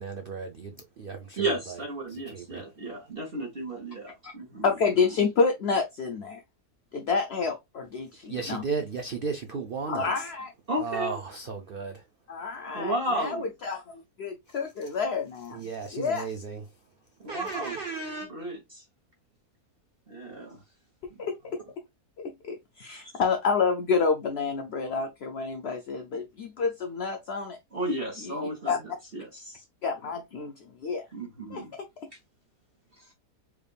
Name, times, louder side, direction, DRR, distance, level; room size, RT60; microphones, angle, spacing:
voice 1, 0.0-2.6 8.3-10.2 10.8-12.1 14.5-14.9 15.5-16.8 17.2-18.3, right 4 dB, 70° right, 0.5 m, -35 dB
voice 2, 1.4-4.7 10.7-11.1 12.7-13.5 17.2-17.7 18.3-18.8 20.1-20.6 21.1-21.2 27.7-28.7 29.1-29.6 31.1-31.7, right 1 dB, 40° right, 1.3 m, -33 dB
voice 3, 4.6-6.4 6.9-8.6 9.9-10.5 12.3-15.6 15.9-16.3 21.2-21.6 22.2-27.6 28.2-28.4 28.7-28.8 29.8-31.1 31.5-32.1, left 5 dB, 65° left, 0.6 m, -29 dB
4.7 x 3.4 x 2.3 m
omnidirectional pair, 1.7 m